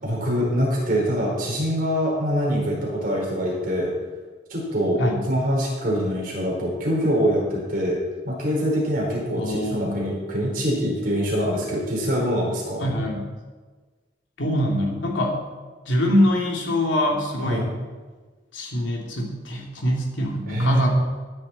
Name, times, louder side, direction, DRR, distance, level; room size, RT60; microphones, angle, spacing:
voice 1, 0.0-3.9 4.5-5.0 5.3-8.0 8.2-12.8 17.4-17.6 20.5-20.9, equal, 45° right, -3 dB, 4.3 m, -24 dB
voice 2, 9.4-10.0 12.8-13.3 14.4-15.4 15.9-17.7 18.5-20.9, left 1 dB, 75° left, -1 dB, 2.9 m, -24 dB
16.0 x 9.7 x 4.4 m, 1.4 s
head